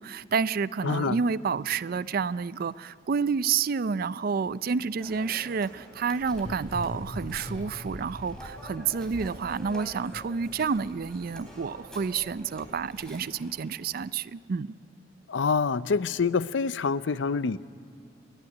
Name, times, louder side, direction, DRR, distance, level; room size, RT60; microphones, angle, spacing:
voice 1, 0.0-14.7, right 5 dB, 55° right, 17 dB, 0.4 m, -29 dB
voice 2, 0.8-1.2 15.3-17.6, left 5 dB, 80° left, 16 dB, 0.5 m, -26 dB
Telephone, 5.0-14.1, equal, 5° left, 3.7 m, -48 dB
Gurgling / Engine, 6.2-12.9, left 1 dB, 25° left, 5.4 m, -43 dB
28.5 x 11.5 x 9.6 m, 2.4 s
head